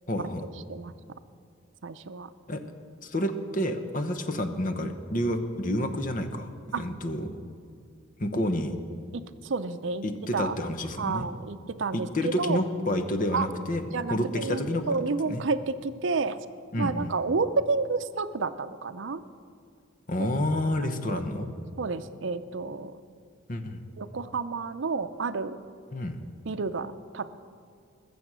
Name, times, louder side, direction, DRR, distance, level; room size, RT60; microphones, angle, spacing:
voice 1, 0.1-0.4 2.5-2.6 3.0-6.5 6.8-7.3 8.2-8.7 10.0-11.3 11.9-13.8 14.1-14.8 15.3-15.4 16.7-17.1 20.1-21.5 23.5-23.8 25.9-26.2, left 1 dB, 40° left, 8 dB, 0.9 m, -29 dB
voice 2, 1.8-2.3 6.7-6.8 9.1-10.0 10.3-10.6 11.0-12.6 13.3-13.5 13.9-16.4 16.8-19.2 20.2-20.3 21.1-21.2 21.8-23.0 24.0-25.6 26.5-27.3, right 4 dB, 70° right, 12 dB, 0.6 m, -30 dB
21.0 x 7.1 x 6.2 m, 2.3 s
head